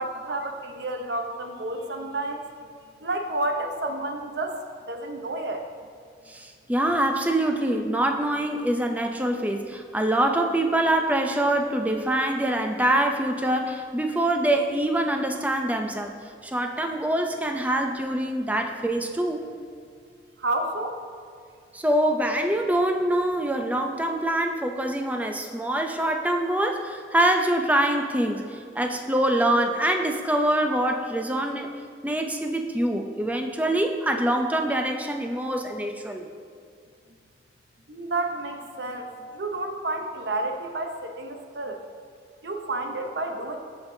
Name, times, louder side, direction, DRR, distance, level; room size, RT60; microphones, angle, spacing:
voice 1, 0.0-2.5 3.0-4.6 4.9-5.6 20.4-20.9 37.9-41.8 42.4-43.6, right 2 dB, 70° right, 4 dB, 0.8 m, -30 dB
voice 2, 6.3-16.1 16.4-19.4 21.7-31.7 32.0-36.3, right 1 dB, 10° right, 3 dB, 0.5 m, -25 dB
15.0 x 5.3 x 2.7 m, 2.3 s
head